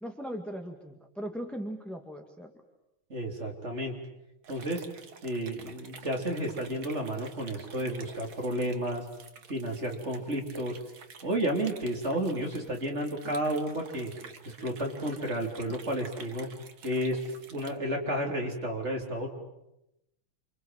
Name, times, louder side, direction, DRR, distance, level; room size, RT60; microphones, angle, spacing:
voice 1, 0.0-2.5, equal, ahead, 3 dB, 1.8 m, -38 dB
voice 2, 3.1-3.9 4.5-4.8 5.2-9.1 9.5-10.8 11.2-14.1 14.5-16.5 16.8-19.3, right 1 dB, 30° right, 1 dB, 3.9 m, -32 dB
sound 1, 4.4-17.8, right 5 dB, 50° right, 2.0 m, -49 dB
29.5 x 25.5 x 7.7 m, 0.87 s
omnidirectional pair, 2.3 m